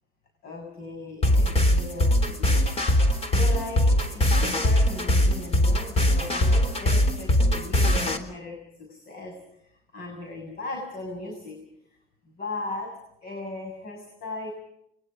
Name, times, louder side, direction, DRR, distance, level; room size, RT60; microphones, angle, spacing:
voice 1, 0.4-2.7 3.0-9.4 9.9-11.6 12.3-14.5, left 2 dB, 65° left, 3 dB, 7.3 m, -37 dB
sound 1, 1.2-8.2, left 1 dB, 35° left, 3.5 m, -21 dB
28.0 x 23.0 x 5.2 m, 0.76 s
cardioid pair, 110°, 17 cm